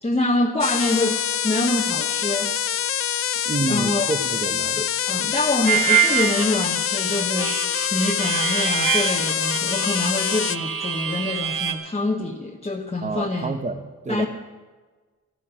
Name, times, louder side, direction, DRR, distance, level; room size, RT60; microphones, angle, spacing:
voice 1, 0.0-2.6 3.6-4.2 4.7-7.6 7.9-13.5 14.1-14.3, left 2 dB, 20° left, 0 dB, 1.2 m, -25 dB
sound 1, 0.6-10.6, left 9 dB, 45° left, 0.4 m, -25 dB
voice 2, 3.5-4.8 13.0-14.3, right 2 dB, 20° right, 8 dB, 1.0 m, -28 dB
Harmonica, 5.7-11.7, right 8 dB, 70° right, 1.4 m, -25 dB
13.5 x 13.0 x 6.2 m, 1.4 s
cardioid pair, 65°, 33 cm